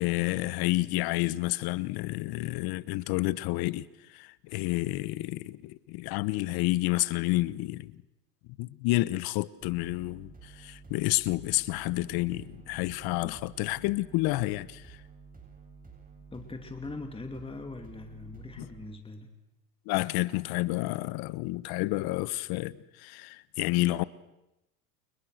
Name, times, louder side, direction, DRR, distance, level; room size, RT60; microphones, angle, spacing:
voice 1, 0.0-8.0 8.6-15.0 18.6-18.7 19.9-24.0, left 19 dB, 50° left, 1.2 m, -30 dB
sound 1, 9.6-18.8, right 5 dB, 15° right, 8.0 m, -51 dB
voice 2, 16.3-19.4, left 3 dB, 10° left, 2.6 m, -41 dB
29.5 x 29.5 x 6.5 m
hypercardioid pair, 100°, 47 cm